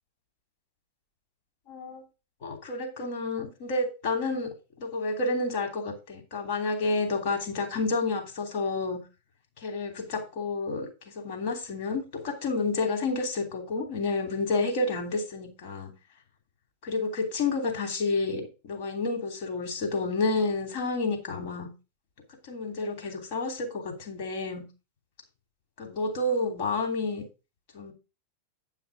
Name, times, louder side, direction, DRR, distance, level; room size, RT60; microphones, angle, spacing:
voice 1, 1.7-2.0 2.4-9.0 9.6-10.9 11.1-15.9 16.8-21.7 22.4-24.6 25.8-27.2 27.7-27.9, left 3 dB, 50° left, 3.0 m, -30 dB
9.7 x 5.7 x 4.9 m
figure-of-eight pair, 90°, 0 cm